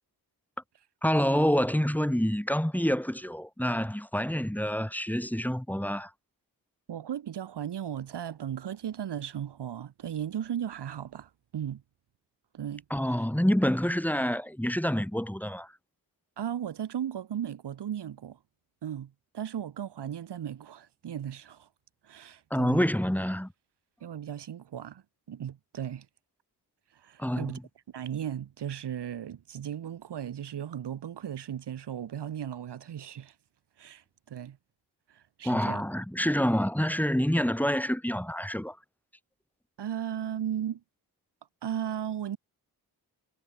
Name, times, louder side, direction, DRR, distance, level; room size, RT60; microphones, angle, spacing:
voice 1, 1.0-6.1 12.9-15.7 22.5-23.5 27.2-27.6 35.4-38.8, equal, 5° left, 4.7 m, -27 dB
voice 2, 6.9-11.8 12.5-12.8 16.4-18.4 18.8-21.7 22.0-22.9 24.0-25.0 25.3-26.1 26.9-27.6 27.9-33.3 33.8-34.6 35.1-35.8 39.8-40.8 41.6-42.4, right 9 dB, 85° right, 4.8 m, -36 dB
cardioid pair, 65°, 40 cm